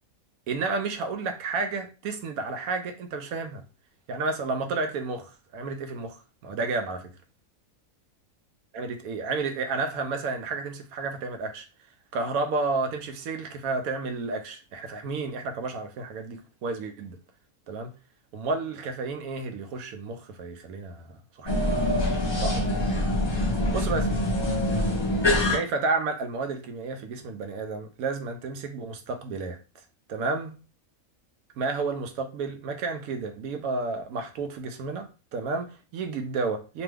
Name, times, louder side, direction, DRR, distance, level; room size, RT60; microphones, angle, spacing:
voice 1, 0.5-3.6 4.1-7.1 8.7-11.7 12.1-17.2 17.7-17.9 18.3-21.7 22.4-22.7 23.7-24.2 25.5-29.6 30.1-30.5 31.6-36.8, right 3 dB, 85° right, 1.0 m, -31 dB
sound 1, 21.5-25.6, left 1 dB, 40° left, 0.4 m, -24 dB
3.0 x 2.2 x 3.2 m
omnidirectional pair, 1.5 m